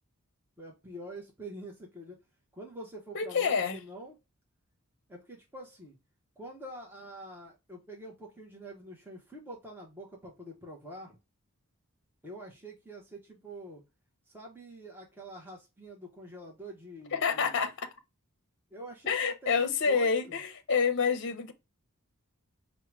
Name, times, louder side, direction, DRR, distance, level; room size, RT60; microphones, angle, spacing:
voice 1, 0.6-2.2 2.5-4.2 5.1-6.0 6.4-11.2 12.2-13.8 14.3-17.7 18.7-20.4, right 1 dB, 10° right, 0.7 m, -46 dB
voice 2, 3.1-3.8 17.1-17.9 19.1-21.5, left 5 dB, 55° left, 0.6 m, -28 dB
4.5 x 2.1 x 4.5 m
head